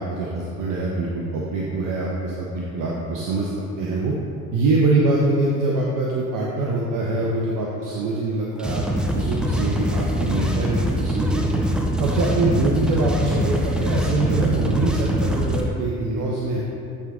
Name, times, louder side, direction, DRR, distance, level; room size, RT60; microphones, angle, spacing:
voice 1, 0.0-4.1 4.5-8.8 9.1-11.4 12.0-16.6, right 2 dB, 50° right, -3 dB, 0.8 m, -24 dB
sound 1, 8.6-15.6, equal, ahead, 0.5 m, -23 dB
8.2 x 3.7 x 3.7 m, 2.7 s
hypercardioid pair, 70°, 43 cm